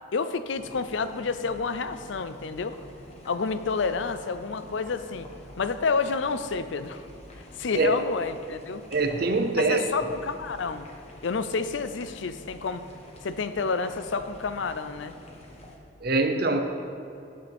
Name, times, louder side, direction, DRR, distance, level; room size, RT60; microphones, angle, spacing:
voice 1, 0.1-2.8 3.3-5.3 5.6-7.0 7.6-8.8 9.6-10.9 11.2-12.9 13.2-15.1, left 4 dB, 65° left, 11 dB, 0.5 m, -29 dB
sound 1, 0.5-15.8, left 1 dB, 30° left, 1.2 m, -48 dB
voice 2, 8.9-9.8 16.0-16.6, right 3 dB, 50° right, 6 dB, 0.8 m, -23 dB
15.0 x 8.4 x 3.5 m, 2.5 s
head